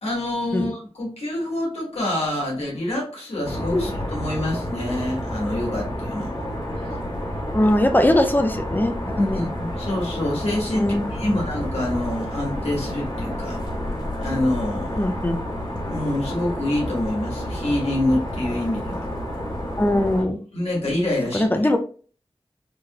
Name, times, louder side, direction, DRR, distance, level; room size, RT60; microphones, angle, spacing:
voice 1, 0.0-6.3 9.2-13.6 14.2-15.1 15.9-19.1 20.5-21.4, left 1 dB, 90° left, -2 dB, 1.5 m, -26 dB
sound 1, 3.4-20.2, equal, 40° left, 1.6 m, -30 dB
voice 2, 7.5-8.9 9.2-9.4 10.8-11.4 15.0-15.4 19.8-20.4 21.3-21.8, left 1 dB, 20° left, 6 dB, 0.5 m, -20 dB
3.8 x 2.9 x 2.3 m, 0.41 s
wide cardioid pair, 65°, 10 cm